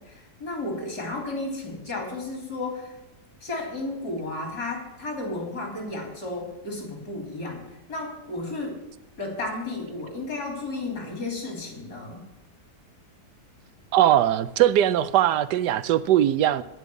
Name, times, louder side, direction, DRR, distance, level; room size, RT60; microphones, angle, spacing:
voice 1, 0.0-3.0 3.4-8.8 9.2-12.2, left 2 dB, 65° left, 3.5 m, -33 dB
voice 2, 13.9-16.6, right 12 dB, 80° right, 1.2 m, -20 dB
15.0 x 5.4 x 9.5 m
omnidirectional pair, 1.8 m